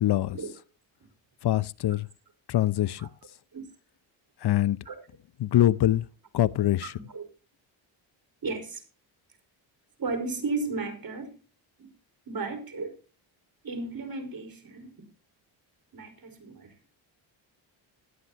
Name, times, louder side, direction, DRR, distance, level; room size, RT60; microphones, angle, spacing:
voice 1, 0.0-0.4 1.4-2.1 2.5-3.1 4.4-4.8 5.4-6.1 6.3-6.9, left 13 dB, 50° left, 0.7 m, -24 dB
voice 2, 8.4-8.8 10.0-11.3 11.8-11.9 12.3-13.0 13.6-15.0 15.9-16.7, right 3 dB, 45° right, 4.9 m, -34 dB
18.0 x 12.0 x 2.9 m
cardioid pair, 80°, 50 cm